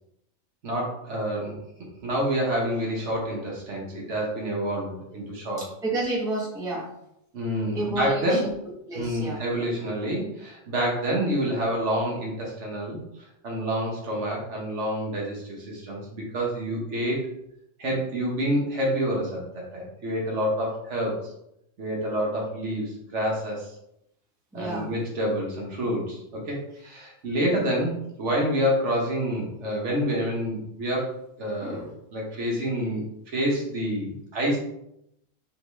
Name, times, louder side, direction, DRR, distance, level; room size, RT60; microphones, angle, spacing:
voice 1, 0.6-1.5 2.0-5.6 7.3-8.4 8.9-13.0 13.4-17.2 17.8-21.2 21.8-23.7 24.5-31.1 31.4-33.0 33.3-34.6, equal, 65° right, -2 dB, 1.3 m, -28 dB
voice 2, 5.6-6.9 7.7-8.5 8.9-9.4 24.5-24.9 31.6-31.8, right 2 dB, 5° right, -5 dB, 0.8 m, -30 dB
3.4 x 3.3 x 3.0 m, 0.78 s
omnidirectional pair, 1.4 m